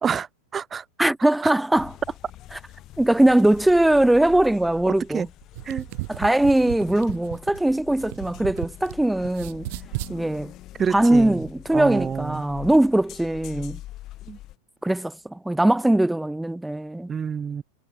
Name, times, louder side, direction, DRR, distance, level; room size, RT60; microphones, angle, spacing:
voice 1, 0.0-0.8 1.4-1.5 4.9-5.3 5.6-5.9 10.8-11.4 11.7-12.4 14.3-14.4 17.1-17.6, right 7 dB, 20° right, 1.4 m, -28 dB
voice 2, 1.0-1.9 3.0-5.3 6.1-9.7 10.1-10.5 10.9-13.8 14.8-17.1, right 1 dB, 5° right, 1.1 m, -21 dB
sound 1, 1.7-14.6, left 15 dB, 35° left, 3.1 m, -44 dB
sound 2, 5.4-8.9 9.2-10.2, right 26 dB, 50° right, 5.6 m, -34 dB
figure-of-eight pair, 90°, 0 cm